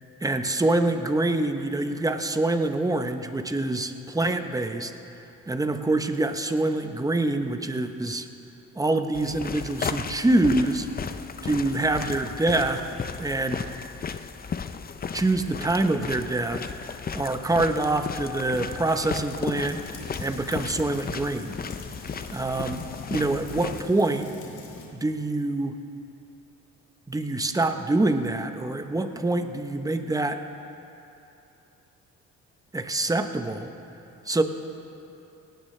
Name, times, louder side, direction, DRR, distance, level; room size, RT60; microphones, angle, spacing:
voice 1, 0.2-4.9 5.5-8.3 8.8-10.9 11.4-12.8 13.2-13.6 15.1-19.8 20.2-21.5 22.3-22.8 23.1-24.3 24.9-25.7 27.1-30.4 32.7-33.7 34.3-34.4, right 2 dB, 10° right, 7 dB, 0.9 m, -25 dB
sound 1, 9.1-23.8, left 6 dB, 30° left, 0.6 m, -35 dB
sound 2, 19.6-24.9, left 3 dB, 80° left, 2.5 m, -43 dB
18.5 x 17.0 x 3.3 m, 2.8 s
cardioid pair, 90°, 30 cm